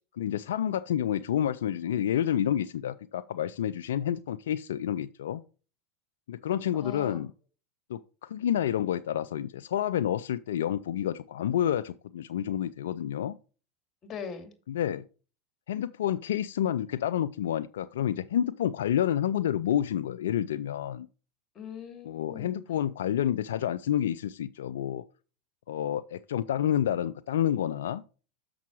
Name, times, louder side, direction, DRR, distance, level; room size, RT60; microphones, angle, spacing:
voice 1, 0.2-5.4 6.3-7.3 7.9-13.4 14.7-15.0 15.7-21.1 22.0-25.0 25.7-28.0, left 10 dB, 80° left, 0.4 m, -29 dB
voice 2, 6.7-7.2 14.0-14.5 21.5-22.6, left 6 dB, 35° left, 2.4 m, -41 dB
6.9 x 6.1 x 4.5 m
hypercardioid pair, 95°, 0 cm